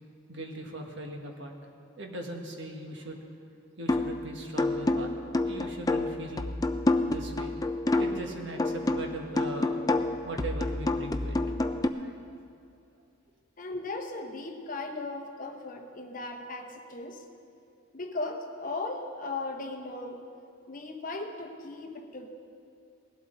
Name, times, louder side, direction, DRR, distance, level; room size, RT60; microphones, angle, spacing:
voice 1, 0.3-1.5 2.0-3.3 3.8-5.1 5.4-6.6 7.1-7.6 8.0-11.4 11.7-12.1, right 1 dB, 55° right, 2 dB, 1.5 m, -39 dB
sound 1, 3.9-4.2 4.6-8.3 8.6-11.9, left 2 dB, 20° left, 0.4 m, -28 dB
voice 2, 13.6-17.2 17.9-20.2 20.7-22.3, left 2 dB, 40° left, 4 dB, 0.9 m, -37 dB
18.5 x 12.0 x 4.0 m, 2.5 s
head